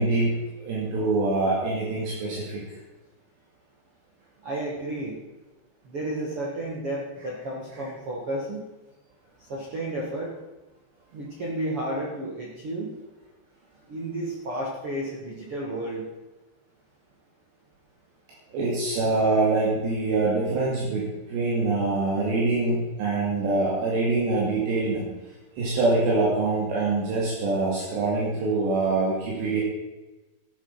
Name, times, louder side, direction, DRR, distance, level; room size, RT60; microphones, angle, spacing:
voice 1, 0.0-2.6 18.5-25.0 25.6-29.6, right 3 dB, 70° right, -4 dB, 4.5 m, -24 dB
voice 2, 4.4-5.2 5.8-8.6 9.4-10.3 11.1-12.9 13.9-16.0, right 1 dB, 50° right, -3 dB, 1.8 m, -32 dB
14.0 x 8.5 x 5.7 m, 1.1 s
omnidirectional pair, 5.2 m